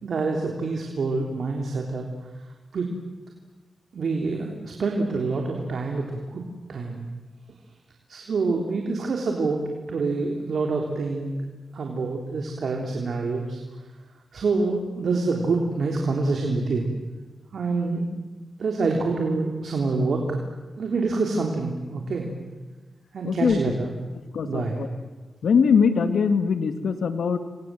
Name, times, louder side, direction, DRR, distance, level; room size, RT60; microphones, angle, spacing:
voice 1, 0.0-2.1 2.7-2.9 3.9-6.4 6.7-7.0 8.1-11.4 11.7-13.6 14.3-16.8 17.5-18.1 18.6-20.4 20.8-22.3 23.1-23.9 24.4-24.8, right 3 dB, 75° right, 1 dB, 3.4 m, -26 dB
voice 2, 23.2-23.7 24.3-24.9 25.4-27.4, left 6 dB, 85° left, 8 dB, 2.1 m, -22 dB
29.5 x 24.5 x 7.8 m, 1.2 s
cardioid pair, 60°, 0 cm